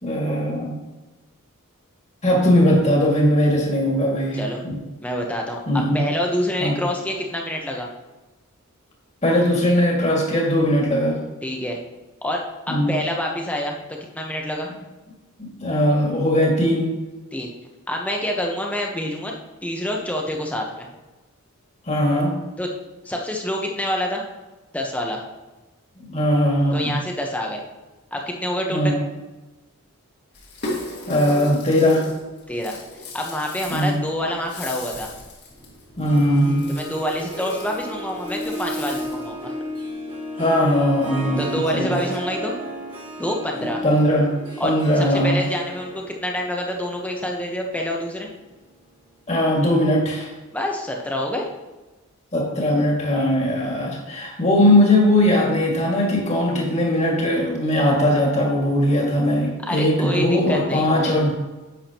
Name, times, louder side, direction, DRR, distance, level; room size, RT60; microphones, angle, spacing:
voice 1, 0.0-0.7 2.2-4.7 5.7-6.0 6.6-6.7 9.2-11.2 12.7-12.9 15.4-16.9 21.9-22.3 26.0-27.0 28.7-28.9 31.1-32.0 33.7-34.0 36.0-36.7 40.4-42.0 43.6-44.3 44.6-45.4 49.3-50.3 52.3-61.3, left 1 dB, 30° left, -2 dB, 2.1 m, -19 dB
voice 2, 5.0-5.6 5.9-7.9 11.4-11.8 12.2-14.7 17.3-17.5 17.9-19.3 19.6-20.9 22.6-22.7 23.0-24.2 24.7-25.2 26.7-27.6 28.1-29.0 32.5-32.8 33.1-35.1 36.7-39.5 41.4-42.5 43.2-43.8 44.6-48.3 50.5-51.5 59.7-61.2, left 1 dB, 5° left, 0 dB, 1.0 m, -27 dB
Rattle (instrument), 30.3-39.3, left 2 dB, 50° left, 2.0 m, -37 dB
Harp, 35.9-48.8, equal, 25° right, 2.2 m, -34 dB
10.5 x 8.0 x 3.0 m, 1.1 s
head